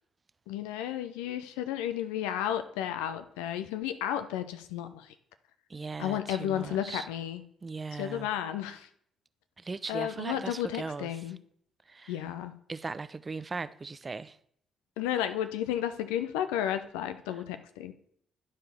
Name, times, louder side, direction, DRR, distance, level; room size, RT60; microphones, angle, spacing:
voice 1, 0.5-5.1 6.0-7.4 8.0-8.9 9.9-11.4 12.1-12.5 15.0-17.9, left 11 dB, 70° left, 0.6 m, -33 dB
voice 2, 5.7-7.1 7.6-8.3 9.6-11.2 11.9-12.2 12.7-14.4 17.3-17.4, right 4 dB, 30° right, 0.4 m, -38 dB
11.5 x 5.0 x 4.3 m
figure-of-eight pair, 40°, 0 cm